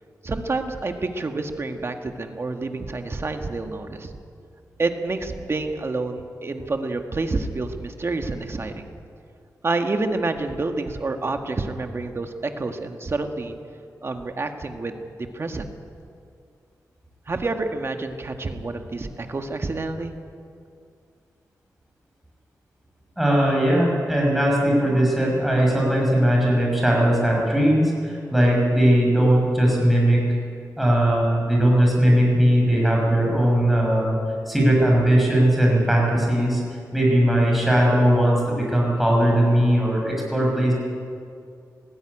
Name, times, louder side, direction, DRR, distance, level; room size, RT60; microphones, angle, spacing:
voice 1, 0.2-4.1 4.8-8.9 9.6-13.5 14.0-15.7 17.3-20.1, right 3 dB, 40° right, 5 dB, 1.6 m, -28 dB
voice 2, 23.2-30.2 30.8-34.2 34.5-36.6 36.9-40.7, right 1 dB, ahead, -2 dB, 6.6 m, -19 dB
20.0 x 15.0 x 9.9 m, 2.4 s
wide cardioid pair, 115°, 7 cm